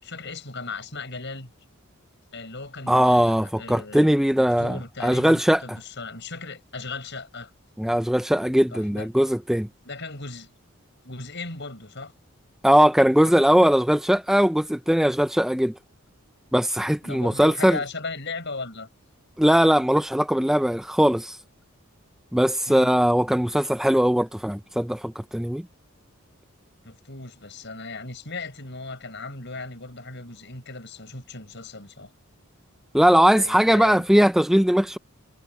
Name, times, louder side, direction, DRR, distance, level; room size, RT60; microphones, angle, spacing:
voice 1, 0.0-1.5 2.3-7.5 8.7-9.1 9.8-10.5 11.0-12.1 17.0-18.9 22.7-22.9 26.8-32.1 33.3-34.1, left 3 dB, 55° left, 6.9 m, -37 dB
voice 2, 2.9-5.6 7.8-9.7 12.6-15.7 16.5-17.8 19.4-21.4 22.3-25.6 32.9-35.0, equal, ahead, 0.3 m, -20 dB
head